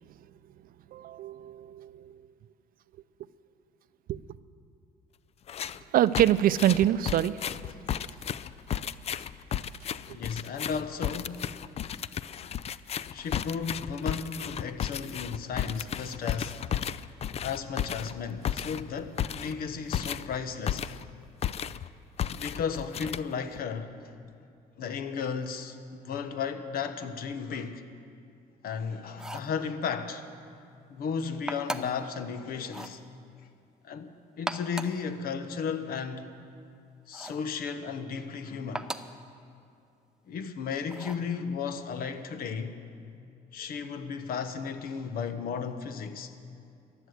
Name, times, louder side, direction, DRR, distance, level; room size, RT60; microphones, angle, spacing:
voice 1, 0.9-2.2 4.1-4.2 5.9-7.4, right 12 dB, 60° right, 0.5 m, -25 dB
sound 1, 5.5-5.8 6.1-21.1 21.4-21.9 22.2-23.6, left 9 dB, 40° left, 0.4 m, -34 dB
voice 2, 10.1-11.5 13.1-16.6 17.4-20.9 22.3-23.9 24.8-27.8 28.6-30.2 30.9-33.0 33.8-36.3 37.1-38.9 40.3-42.8 43.5-46.3, left 6 dB, 60° left, 1.2 m, -34 dB
sound 2, 29.1-29.6 31.5-32.1 32.7-33.0 34.3-35.0 37.1-37.5 38.7-39.2 40.9-41.3, right 1 dB, 5° right, 0.6 m, -37 dB
14.5 x 11.0 x 8.0 m
cardioid pair, 110°, 17 cm